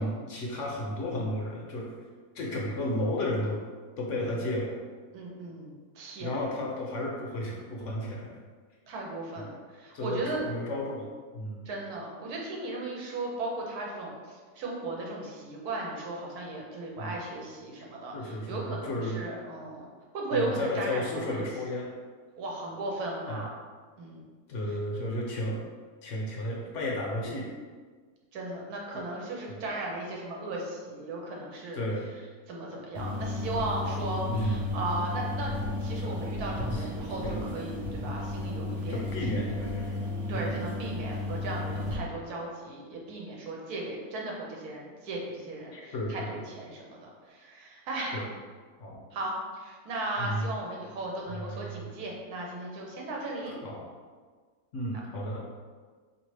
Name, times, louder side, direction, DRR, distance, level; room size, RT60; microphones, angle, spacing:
voice 1, 0.0-1.9 2.3-3.6 4.0-4.8 6.2-8.3 9.4-9.5 9.9-11.6 17.0-17.2 18.1-19.2 20.3-21.9 23.3-23.5 24.5-25.6 26.0-27.5 28.9-29.0 29.5-29.6 31.7-32.1 34.3-34.8 36.0-36.1 36.7-37.4 38.9-40.1 40.3-40.7 45.7-46.4 48.1-48.3 48.8-48.9 50.2-50.5 51.3-51.9 53.4-53.8 54.7-55.4, left 1 dB, 65° left, -2 dB, 0.9 m, -33 dB
voice 2, 5.1-6.4 8.9-10.4 11.6-19.8 20.1-21.5 22.4-23.5 24.0-24.3 28.3-31.8 32.5-35.5 35.8-39.0 40.3-48.2 49.1-53.6, right 2 dB, 85° right, -2 dB, 1.3 m, -36 dB
sound 1, 32.9-41.9, left 2 dB, 50° right, 0.9 m, -33 dB
4.1 x 2.8 x 3.2 m, 1.5 s
omnidirectional pair, 1.6 m